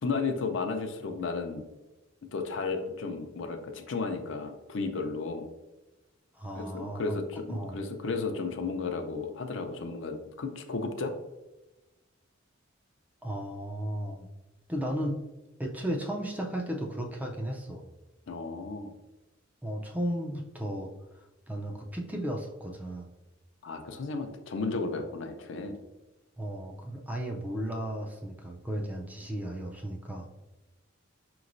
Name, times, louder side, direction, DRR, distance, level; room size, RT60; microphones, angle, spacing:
voice 1, 0.0-1.7 2.3-5.5 6.6-11.1 18.3-18.9 23.6-25.8, left 4 dB, 65° left, 5 dB, 0.5 m, -33 dB
voice 2, 6.3-7.2 7.5-7.8 13.2-14.3 14.7-15.2 15.6-17.9 19.6-20.9 21.2-23.1 26.4-30.3, right 1 dB, 10° right, 1 dB, 0.4 m, -35 dB
5.2 x 3.0 x 2.5 m, 1.1 s
head